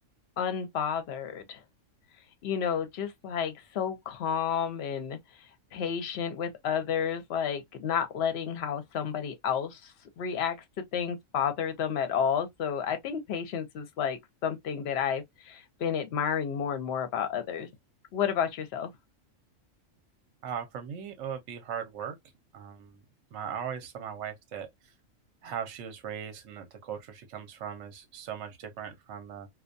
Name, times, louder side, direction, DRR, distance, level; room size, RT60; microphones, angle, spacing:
voice 1, 0.4-1.6 2.4-5.2 5.7-9.9 10.2-17.7 18.1-18.9, left 7 dB, 60° left, 0.8 m, -31 dB
voice 2, 20.4-22.2 22.5-23.0 23.3-24.7 25.4-29.5, right 8 dB, 70° right, 1.0 m, -38 dB
2.3 x 2.2 x 2.4 m
omnidirectional pair, 1.3 m